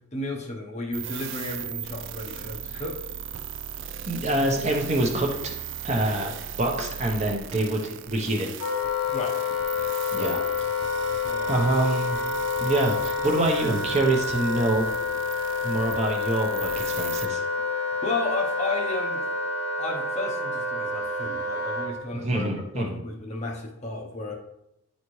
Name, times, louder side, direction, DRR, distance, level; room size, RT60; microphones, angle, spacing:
voice 1, 0.0-3.0 9.1-9.4 10.1-10.3 11.2-11.6 18.0-19.4 19.8-22.5 22.7-24.3, left 2 dB, 30° left, 0 dB, 0.8 m, -33 dB
sound 1, 0.9-17.2, right 9 dB, 55° right, 0.4 m, -38 dB
voice 2, 4.1-5.5 5.8-8.5 10.1-10.4 11.5-12.2 12.6-14.9 15.6-17.4 22.2-23.0, right 2 dB, 30° right, 1 dB, 0.9 m, -26 dB
Wind instrument woodwind instrument, 8.6-21.9, left 4 dB, 85° left, 1.5 m, -28 dB
9.6 x 4.2 x 3.2 m, 0.85 s
head